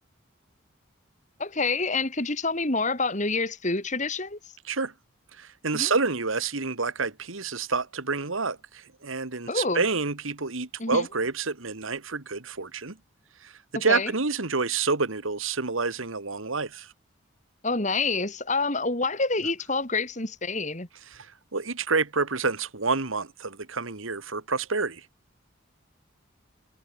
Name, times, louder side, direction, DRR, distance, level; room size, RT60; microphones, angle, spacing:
voice 1, 1.4-4.4 5.7-5.9 9.5-9.8 10.8-11.1 13.9-14.1 17.6-20.9, left 3 dB, 35° left, 2.8 m, -27 dB
voice 2, 5.3-13.0 13.4-16.9 21.1-25.1, right 4 dB, 80° right, 1.9 m, -28 dB
head